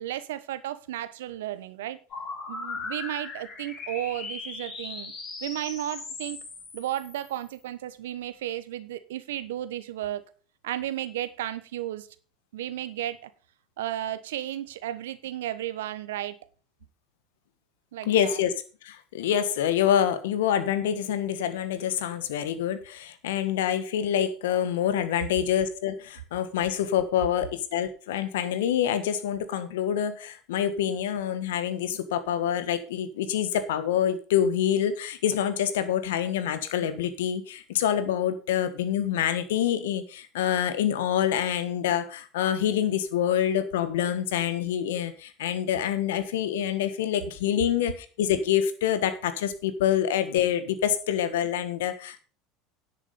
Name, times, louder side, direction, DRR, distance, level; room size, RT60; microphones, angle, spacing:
voice 1, 0.0-2.0 2.5-5.1 5.4-6.4 6.7-10.2 10.6-12.1 12.5-13.3 13.8-16.4 17.9-18.4, right 13 dB, 75° right, 14 dB, 1.1 m, -33 dB
sound 1, 2.1-7.6, left 4 dB, 50° left, 6.6 m, -39 dB
voice 2, 18.0-18.5 18.8-52.2, left 10 dB, 75° left, 12 dB, 1.4 m, -26 dB
10.5 x 8.4 x 5.3 m, 0.38 s
hypercardioid pair, 75°, 0 cm